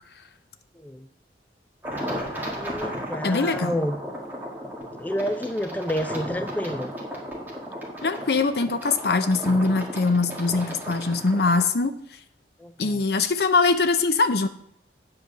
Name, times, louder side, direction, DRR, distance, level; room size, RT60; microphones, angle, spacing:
voice 1, 0.7-1.1 2.6-4.0 5.0-6.9 12.6-13.0, equal, 10° left, 8 dB, 0.3 m, -29 dB
sound 1, 1.8-11.7, equal, 10° right, 1.8 m, -34 dB
voice 2, 3.2-3.7 8.0-11.9 12.8-14.5, left 3 dB, 60° left, 10 dB, 0.7 m, -22 dB
8.9 x 4.9 x 6.7 m, 0.74 s
head